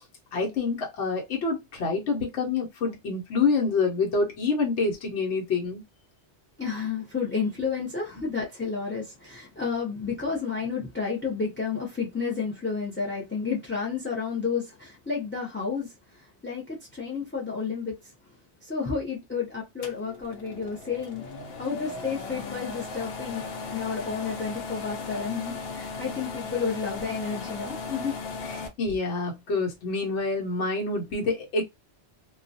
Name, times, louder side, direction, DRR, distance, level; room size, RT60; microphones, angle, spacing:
voice 1, 0.3-5.8 8.1-8.2 28.5-31.6, left 4 dB, 80° left, 1.1 m, -27 dB
voice 2, 6.6-15.9 16.4-18.0 18.6-21.2 21.6-23.4 23.7-28.2, left 5 dB, 15° left, 0.5 m, -31 dB
sound 1, 19.8-28.7, left 4 dB, 65° left, 0.8 m, -37 dB
2.3 x 2.2 x 2.6 m
omnidirectional pair, 1.2 m